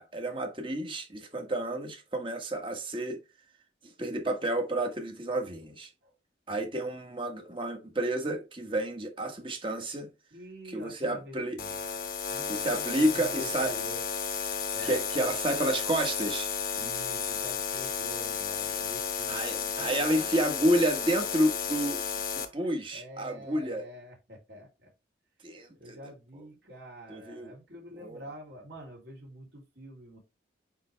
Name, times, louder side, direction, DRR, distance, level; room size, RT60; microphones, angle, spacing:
voice 1, 0.0-3.2 3.8-5.9 6.5-10.1 10.7-11.6 12.5-13.8 14.8-16.5 19.3-22.0 22.4-23.8 25.4-26.0 27.1-27.5 28.0-28.2, right 1 dB, 25° right, 1.3 m, -30 dB
voice 2, 10.3-11.8 12.3-14.0 14.7-15.3 16.7-20.9 22.6-24.9 25.7-30.2, equal, 60° right, 3.1 m, -47 dB
sound 1, 11.6-22.5, left 6 dB, 50° left, 1.0 m, -33 dB
9.0 x 3.4 x 3.3 m
head